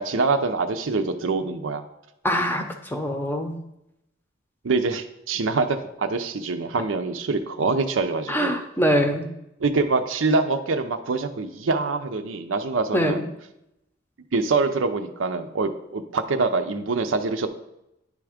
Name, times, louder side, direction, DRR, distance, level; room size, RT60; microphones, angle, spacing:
voice 1, 0.0-1.8 4.6-8.5 9.6-13.2 14.3-17.5, right 3 dB, 80° right, 7 dB, 0.6 m, -25 dB
voice 2, 2.2-3.5 8.3-9.3 12.9-13.2, equal, 10° left, 5 dB, 0.7 m, -23 dB
9.7 x 3.5 x 5.0 m, 0.86 s
head